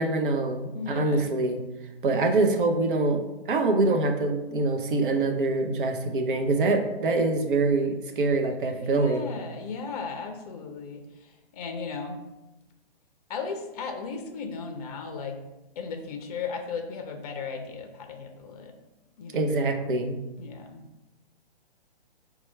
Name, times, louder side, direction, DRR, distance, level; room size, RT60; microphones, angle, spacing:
voice 1, 0.0-1.6 2.0-3.2 3.5-9.3 19.3-20.2, right 3 dB, 55° right, 5 dB, 0.7 m, -24 dB
voice 2, 0.7-1.3 8.7-11.0 11.5-12.2 13.3-15.4 15.8-18.7 19.2-19.5 20.4-20.8, left 5 dB, 40° left, 5 dB, 0.5 m, -36 dB
4.4 x 2.3 x 4.2 m, 0.99 s
figure-of-eight pair, 130°, 31 cm